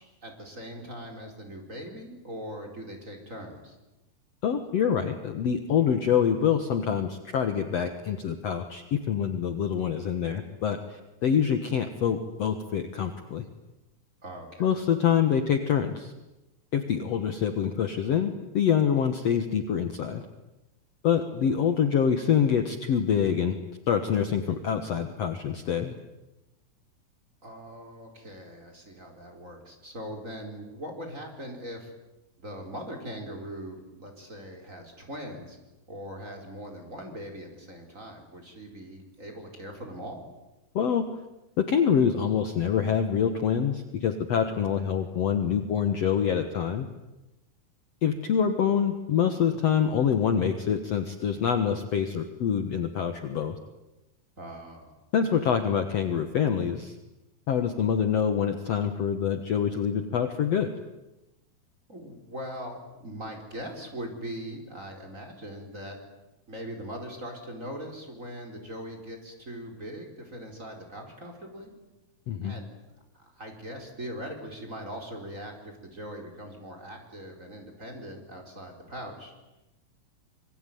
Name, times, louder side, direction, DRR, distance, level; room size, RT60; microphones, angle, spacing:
voice 1, 0.0-3.7 14.2-14.7 27.4-31.9 32.4-35.6 35.9-40.2 54.4-54.9 61.9-66.0 66.5-71.7 72.4-72.7 73.2-79.3, equal, 20° right, 3 dB, 4.7 m, -41 dB
voice 2, 4.4-13.5 14.6-16.1 16.7-20.2 21.0-23.6 23.9-26.0 40.8-41.1 41.6-46.9 48.0-53.6 55.1-57.0 57.5-60.7 72.3-72.6, left 8 dB, 55° left, 7 dB, 2.1 m, -26 dB
26.5 x 24.0 x 9.4 m, 0.98 s
omnidirectional pair, 4.1 m